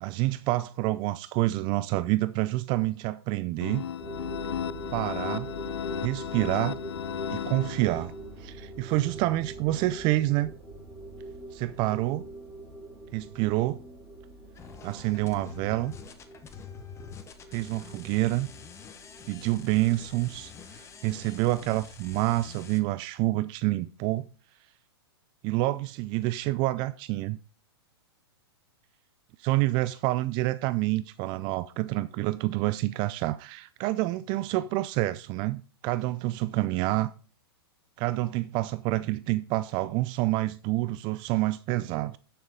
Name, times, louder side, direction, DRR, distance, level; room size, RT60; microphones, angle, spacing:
voice 1, 0.0-3.8 4.9-5.5 6.0-6.8 7.3-8.1 8.4-10.5 11.5-12.3 13.1-13.8 14.8-15.9 17.5-18.5 19.3-24.3 25.4-27.4 29.4-37.1 38.0-42.2, right 18 dB, 35° right, 0.4 m, -28 dB
sound 1, 3.6-8.3, left 10 dB, 75° left, 0.4 m, -35 dB
sound 2, 4.0-21.3, right 2 dB, ahead, 6.3 m, -44 dB
sound 3, 14.5-22.8, left 7 dB, 20° left, 1.1 m, -47 dB
12.0 x 6.8 x 3.7 m
hypercardioid pair, 115°, 14 cm